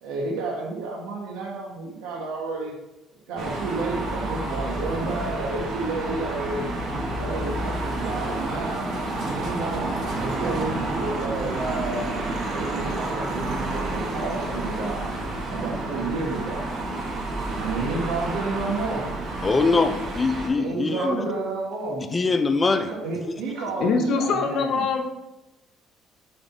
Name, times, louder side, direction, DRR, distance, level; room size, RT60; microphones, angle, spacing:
voice 1, 0.0-2.7 3.3-6.7 7.1-9.8 10.2-12.1 12.5-15.1 15.5-16.7 17.5-19.1 20.5-22.2 22.7-24.9, right 3 dB, 85° right, -1 dB, 1.6 m, -31 dB
sound 1, 3.4-20.5, right 2 dB, 40° right, 1.2 m, -29 dB
voice 2, 19.4-21.2 22.1-22.9 23.3-23.4, left 3 dB, 15° left, 8 dB, 0.3 m, -23 dB
voice 3, 23.8-25.0, left 4 dB, 50° left, 5 dB, 0.8 m, -23 dB
6.8 x 3.8 x 4.0 m, 0.99 s
cardioid pair, 175°, 0 cm